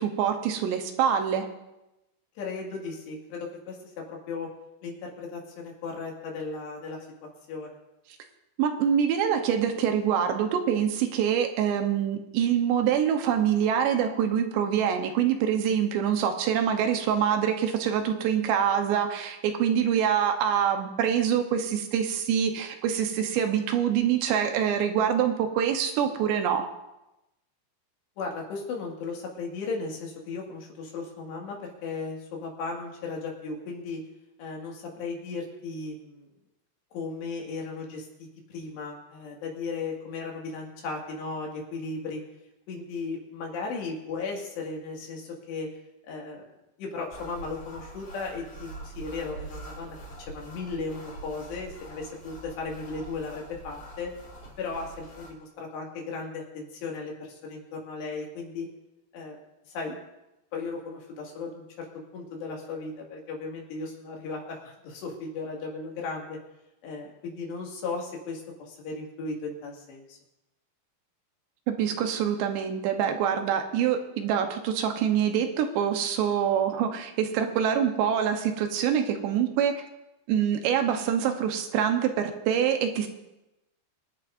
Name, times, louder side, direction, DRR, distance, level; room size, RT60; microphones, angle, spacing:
voice 1, 0.0-1.5 8.6-26.7 71.7-79.7 80.3-83.1, right 8 dB, 80° right, 5 dB, 3.2 m, -25 dB
voice 2, 2.4-4.5 4.8-7.8 28.2-34.0 34.4-36.3 36.9-42.2 42.7-45.7 46.0-46.5 46.8-54.1 54.6-58.7 59.1-59.4 59.7-60.0 60.5-61.9 62.1-66.4 66.8-70.2, left 4 dB, 75° left, -1 dB, 4.3 m, -36 dB
sound 1, 47.1-55.3, right 2 dB, 55° left, 5.3 m, -44 dB
24.0 x 10.5 x 2.6 m, 0.93 s
omnidirectional pair, 5.0 m